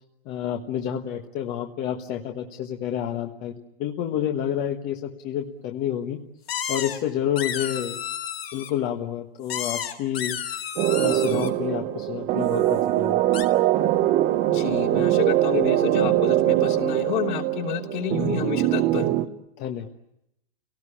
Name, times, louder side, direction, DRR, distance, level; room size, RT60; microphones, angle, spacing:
voice 1, 0.2-6.2 6.7-8.0 8.5-10.4 10.9-13.2 19.6-19.9, left 10 dB, 30° left, 3 dB, 1.4 m, -29 dB
sound 1, 6.5-7.0 7.4-8.7 9.5-11.5 13.3-13.4, left 9 dB, 85° left, 3.8 m, -31 dB
sound 2, 10.8-19.3, right 14 dB, 30° right, 1.1 m, -22 dB
voice 2, 14.5-19.2, left 8 dB, 50° left, 2 dB, 3.3 m, -29 dB
29.5 x 18.5 x 9.9 m, 0.83 s
hypercardioid pair, 155°, 29 cm